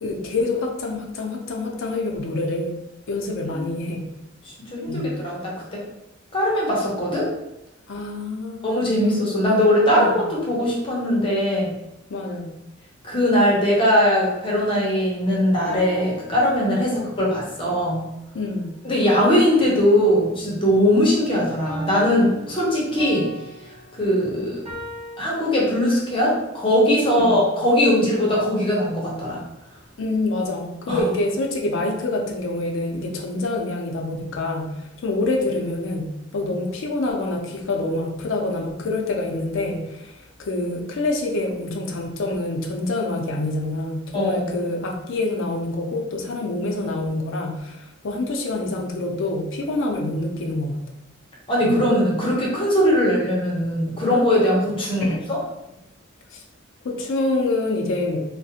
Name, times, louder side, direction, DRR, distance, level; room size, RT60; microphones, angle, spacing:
voice 1, 0.0-2.7 3.1-4.1 4.9-5.1 7.9-9.2 9.9-10.3 12.1-12.5 18.3-18.7 27.2-27.4 30.0-50.8 51.6-51.8 55.0-55.2 56.3-56.4 56.8-58.2, left 2 dB, 70° left, 1 dB, 0.4 m, -26 dB
voice 2, 4.7-5.8 6.3-7.3 8.6-11.7 13.0-18.0 18.8-23.2 24.0-24.6 25.2-29.4 30.9-31.0 44.1-44.5 51.5-55.4, equal, 25° left, -4 dB, 0.7 m, -20 dB
sound 1, 15.2-17.1 21.7-25.2, left 1 dB, 25° right, 0.9 m, -38 dB
2.4 x 2.1 x 2.7 m, 0.91 s
head